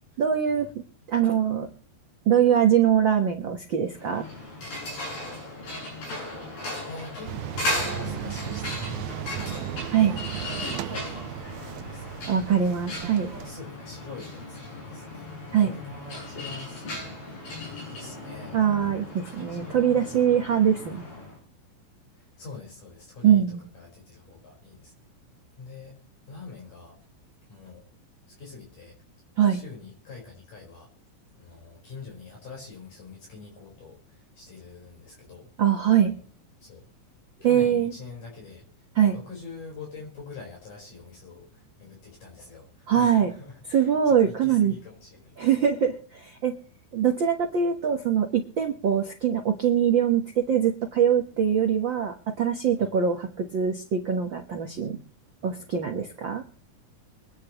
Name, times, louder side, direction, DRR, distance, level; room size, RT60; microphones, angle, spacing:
voice 1, 0.2-0.7 1.1-1.7 2.2-4.3 9.9-10.1 12.3-13.3 15.5-15.7 18.5-21.0 23.2-23.6 29.4-29.6 35.6-36.1 37.4-37.9 38.9-39.2 42.9-43.3 43.7-44.7 45.4-46.5 46.9-55.0 55.4-56.4, right 8 dB, 65° right, 3 dB, 1.2 m, -23 dB
sound 1, 3.9-21.4, left 1 dB, 90° left, 10.0 m, -36 dB
voice 2, 6.4-12.3 13.1-17.6 17.9-18.6 19.5-19.8 20.1-20.2 22.1-24.9 25.6-25.9 26.3-27.0 27.5-27.8 28.3-29.0 29.4-30.9 31.3-35.5 36.0-36.2 36.6-36.9 37.4-45.5 52.8-52.9, left 4 dB, 60° left, -1 dB, 6.1 m, -45 dB
sound 2, 7.3-13.5, right 12 dB, 90° right, 2.6 m, -36 dB
24.0 x 10.5 x 3.0 m, 0.43 s
omnidirectional pair, 4.2 m